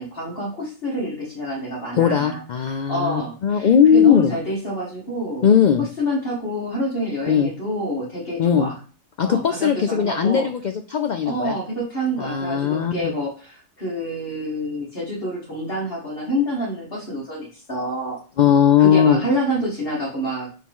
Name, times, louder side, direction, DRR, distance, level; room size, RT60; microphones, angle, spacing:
voice 1, 0.0-2.4 2.9-5.5 5.8-8.8 9.2-10.5 11.3-18.2 18.8-20.5, equal, 45° left, -7 dB, 2.1 m, -27 dB
voice 2, 2.0-4.3 5.4-5.8 7.3-7.5 8.4-8.7 9.2-11.5 12.2-13.1 18.4-19.2, left 8 dB, 70° left, 7 dB, 0.4 m, -18 dB
8.4 x 3.7 x 3.7 m, 0.37 s
omnidirectional pair, 1.3 m